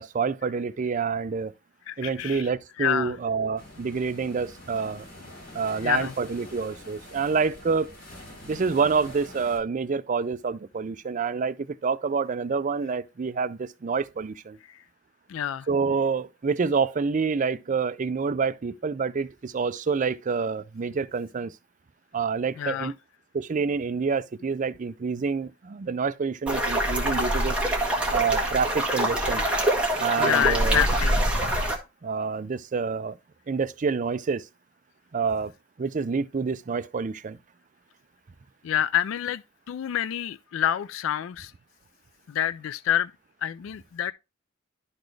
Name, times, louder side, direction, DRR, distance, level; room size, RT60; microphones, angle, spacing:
voice 1, 0.0-1.5 2.0-5.1 5.5-8.0 8.4-14.6 15.7-21.5 22.1-22.9 23.3-27.6 28.1-29.4 30.0-30.8 32.0-33.2 33.5-34.5 35.1-35.5 35.8-37.4, right 5 dB, 40° right, 0.4 m, -27 dB
voice 2, 1.9-2.5 2.8-3.2 5.8-6.1 14.7-14.8 15.3-15.7 22.6-22.9 30.2-31.3 38.6-39.4 39.7-41.5 42.3-43.1 43.4-44.1, left 10 dB, 70° left, 0.3 m, -27 dB
sound 1, 3.6-9.6, left 1 dB, 45° left, 3.4 m, -45 dB
sound 2, 26.5-31.8, right 1 dB, 5° right, 1.6 m, -25 dB
12.0 x 4.2 x 3.2 m
head